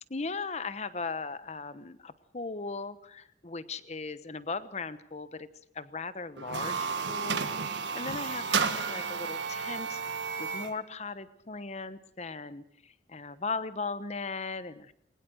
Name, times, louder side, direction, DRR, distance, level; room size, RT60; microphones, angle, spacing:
voice 1, 0.1-5.5 5.7-14.9, left 4 dB, 40° left, 14 dB, 1.0 m, -38 dB
sound 1, 6.4-10.8, right 5 dB, 90° right, 1.6 m, -32 dB
21.5 x 19.5 x 6.4 m, 0.70 s
head